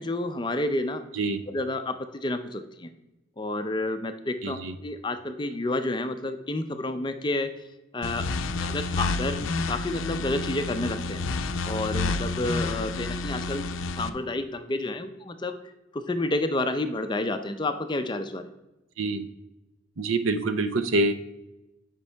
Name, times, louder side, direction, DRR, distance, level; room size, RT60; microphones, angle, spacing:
voice 1, 0.0-1.0 1.5-2.9 3.4-7.5 7.9-8.2 8.6-11.3 11.7-13.7 14.0-15.6 15.9-18.5, left 2 dB, 25° left, 8 dB, 0.5 m, -30 dB
voice 2, 4.4-4.7 19.0-19.3 20.0-21.1, right 2 dB, 85° right, 10 dB, 0.6 m, -26 dB
sound 1, 8.0-14.1, left 3 dB, 85° left, 0.5 m, -30 dB
8.3 x 5.3 x 3.4 m, 0.97 s
head